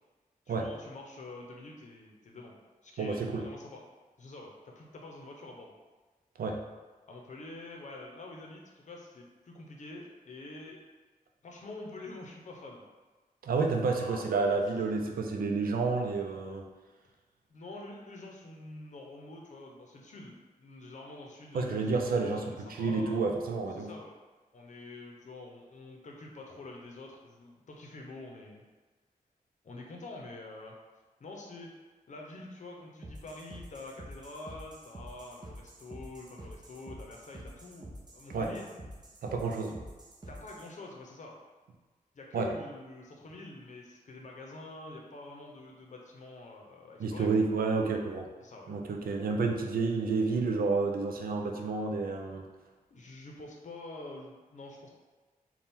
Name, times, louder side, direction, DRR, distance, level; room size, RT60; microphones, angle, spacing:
voice 1, 0.5-2.5 2.8-3.8 4.2-5.7 7.1-10.8 11.4-12.8 13.9-14.4 17.5-23.3 23.8-24.1 24.5-28.6 29.6-30.8 31.2-31.7 32.1-38.7 40.3-41.4 42.1-47.3 48.4-48.7 52.9-54.9, left 2 dB, 55° left, 0 dB, 0.7 m, -46 dB
voice 2, 3.0-3.5 6.4-6.6 13.4-16.6 21.5-23.9 38.3-38.5 39.2-39.8 42.3-42.5 47.0-48.3 48.7-52.5, right 4 dB, 80° right, 2 dB, 0.5 m, -30 dB
sound 1, 33.0-40.7, right 1 dB, 25° right, 0.7 m, -47 dB
4.3 x 2.3 x 3.5 m, 1.3 s
wide cardioid pair, 110°, 15 cm